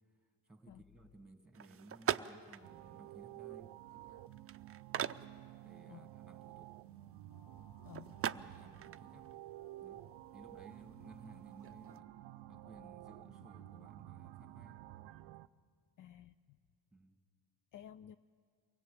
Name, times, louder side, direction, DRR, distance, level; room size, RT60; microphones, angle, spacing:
voice 1, 0.5-3.7 5.6-6.7 8.2-9.3 9.8-12.1 12.5-14.8 16.9-17.2, right 2 dB, ahead, 2.3 m, -59 dB
sound 1, 1.5-12.0, right 9 dB, 35° right, 0.6 m, -44 dB
sound 2, 2.6-15.5, right 15 dB, 80° right, 0.6 m, -52 dB
sound 3, 7.3-15.0, left 1 dB, 70° left, 5.5 m, -69 dB
voice 2, 7.8-8.1 16.0-16.6 17.7-18.2, left 10 dB, 50° left, 0.6 m, -54 dB
23.5 x 17.0 x 8.6 m
supercardioid pair, 75°, 42 cm